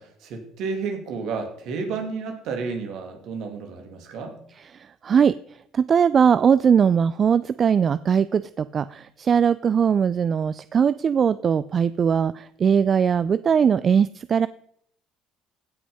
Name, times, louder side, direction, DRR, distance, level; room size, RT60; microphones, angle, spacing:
voice 1, 0.0-4.4, right 4 dB, 65° right, 5 dB, 2.5 m, -31 dB
voice 2, 4.7-5.3 5.7-14.5, right 7 dB, 45° right, 16 dB, 0.3 m, -20 dB
16.0 x 6.1 x 5.4 m, 0.68 s
hypercardioid pair, 65°, 0 cm